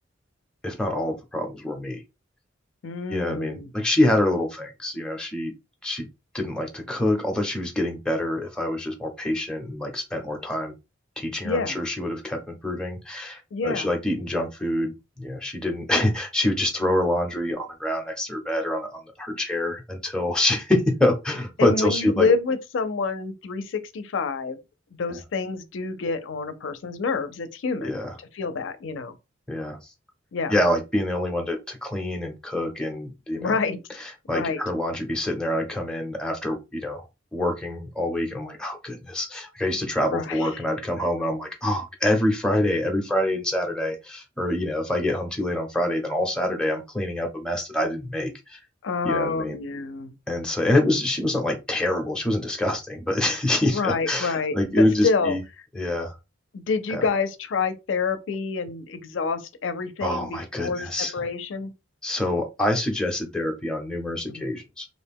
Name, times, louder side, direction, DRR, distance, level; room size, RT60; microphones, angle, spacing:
voice 1, 0.6-2.0 3.1-5.5 5.8-6.1 6.3-10.7 11.2-22.3 25.1-25.2 27.8-28.1 29.5-29.8 30.5-33.5 34.3-37.0 37.3-48.6 49.0-49.6 50.3-55.4 55.7-56.2 56.9-57.0 60.0-61.1 62.0-64.9, left 1 dB, 5° left, 0.6 m, -26 dB
voice 2, 2.8-3.7 11.4-11.8 13.5-13.9 21.6-24.6 24.9-27.9 28.3-29.1 30.3-30.6 33.3-33.8 34.3-34.6 40.1-40.5 48.8-50.1 53.6-55.4 56.5-61.7 64.3-64.5, left 4 dB, 70° left, 0.4 m, -27 dB
2.5 x 2.1 x 3.4 m
head